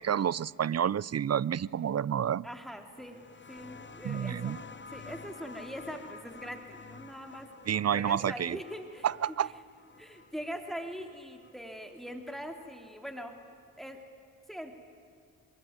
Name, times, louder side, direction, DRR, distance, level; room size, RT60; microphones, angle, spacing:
voice 1, 0.0-2.5 4.0-4.6 7.7-8.6 9.0-9.5, right 9 dB, 45° right, 23 dB, 0.5 m, -29 dB
voice 2, 2.4-3.2 3.5-4.6 4.9-7.5 7.9-9.1 10.0-13.3 13.8-14.0 14.5-14.8, equal, ahead, 4 dB, 3.3 m, -42 dB
sound 1, 3.0-12.3 13.4-13.5, left 4 dB, 30° left, 1.1 m, -50 dB
24.0 x 22.0 x 9.6 m, 2.3 s
cardioid pair, 50°, 37 cm